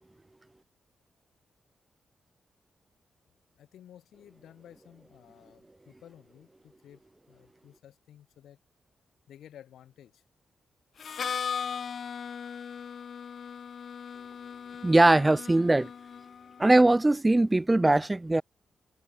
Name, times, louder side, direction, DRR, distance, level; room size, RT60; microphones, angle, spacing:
voice 1, 3.5-7.0 7.3-8.6 9.3-10.2, left 10 dB, 80° left, 3.1 m, -54 dB
Harmonica, 11.0-16.7, left 7 dB, 65° left, 1.1 m, -38 dB
voice 2, 14.8-15.9 16.6-18.4, right 2 dB, 20° right, 0.4 m, -21 dB
supercardioid pair, 45°, 0 cm